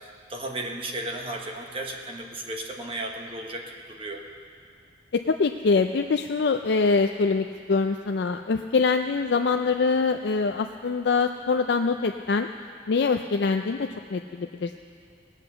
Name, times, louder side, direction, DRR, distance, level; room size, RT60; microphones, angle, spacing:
voice 1, 0.0-4.2, right 1 dB, 30° right, 1 dB, 1.1 m, -35 dB
voice 2, 5.1-12.5 12.9-14.8, left 4 dB, 65° left, 6 dB, 0.4 m, -24 dB
18.5 x 8.2 x 6.8 m, 2.4 s
head